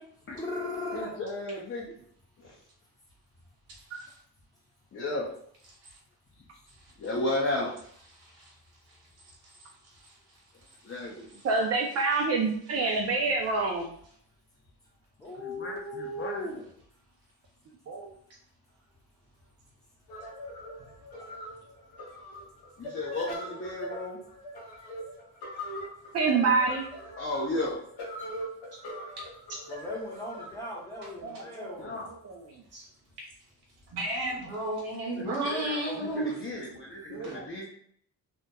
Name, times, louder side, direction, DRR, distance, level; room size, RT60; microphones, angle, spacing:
voice 1, 0.3-1.1 15.2-16.6 29.7-32.0, left 1 dB, 10° left, -3 dB, 0.8 m, -37 dB
voice 2, 0.9-1.9 2.4-2.5 4.9-5.3 7.0-7.7 10.8-11.4 15.4-16.5 22.8-24.2 27.2-27.8 31.8-32.1 35.1-37.7, left 2 dB, 35° left, -3 dB, 0.5 m, -34 dB
voice 3, 11.4-13.9 17.9-18.1 26.1-26.9 31.2-31.8 32.2-32.4 32.7-32.8 37.1-37.5, right 4 dB, 45° right, 0 dB, 0.4 m, -27 dB
sound 1, 20.1-31.7, equal, 80° left, 0.7 m, -41 dB
voice 4, 33.9-36.3 37.2-37.4, right 1 dB, 90° right, -3 dB, 1.0 m, -32 dB
2.9 x 2.0 x 2.2 m, 0.65 s
cardioid pair, 95°, 38 cm